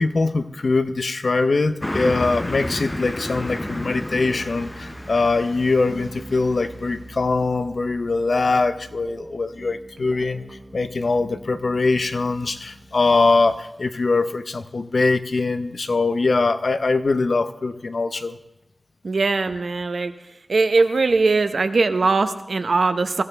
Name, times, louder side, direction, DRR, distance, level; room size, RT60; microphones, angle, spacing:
voice 1, 0.0-10.4 10.7-18.4, left 3 dB, 70° left, 10 dB, 0.7 m, -22 dB
Car passing by, 1.8-6.8, left 1 dB, 20° left, 0.5 m, -31 dB
sound 1, 3.6-13.6, right 2 dB, 35° right, 1.3 m, -43 dB
voice 2, 19.0-20.2 20.5-23.2, right 3 dB, 80° right, 9 dB, 0.8 m, -20 dB
21.5 x 14.0 x 3.4 m, 0.91 s
wide cardioid pair, 70°, 0 cm